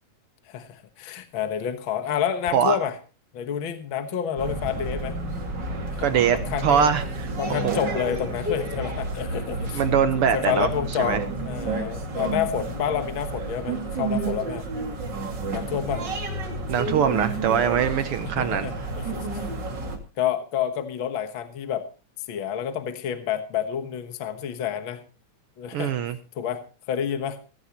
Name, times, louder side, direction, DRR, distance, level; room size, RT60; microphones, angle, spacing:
voice 1, 0.5-3.0 3.3-5.1 5.9-6.9 7.4-9.8 10.1-14.6 15.5-16.0 18.2-19.5 20.2-21.8 22.3-25.0 25.6-25.9 26.3-26.6 26.9-27.4, left 8 dB, 55° left, 1.6 m, -29 dB
sound 1, 4.4-20.0, right 2 dB, 35° right, 2.6 m, -30 dB
voice 2, 6.0-6.4 6.6-7.3 7.6-7.8 9.7-10.7 11.0-11.2 16.7-18.7 25.7-26.2, right 8 dB, 80° right, 1.2 m, -22 dB
17.0 x 15.5 x 3.0 m
omnidirectional pair, 3.5 m